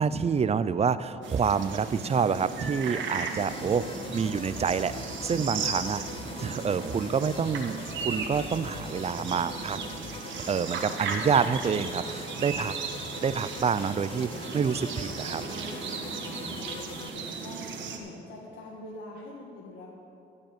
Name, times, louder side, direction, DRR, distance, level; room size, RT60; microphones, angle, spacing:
voice 1, 0.0-3.8 4.1-4.9 5.2-6.0 6.4-9.8 10.5-12.8 13.2-15.4, right 6 dB, 30° right, 15 dB, 0.5 m, -27 dB
sound 1, 1.2-18.0, right 5 dB, 70° right, 1.4 m, -36 dB
sound 2, 3.4-17.1, left 6 dB, 30° left, 0.4 m, -43 dB
voice 2, 16.0-19.9, left 2 dB, 80° left, -2 dB, 1.6 m, -45 dB
13.5 x 5.3 x 8.9 m, 2.8 s
cardioid pair, 90°, 20 cm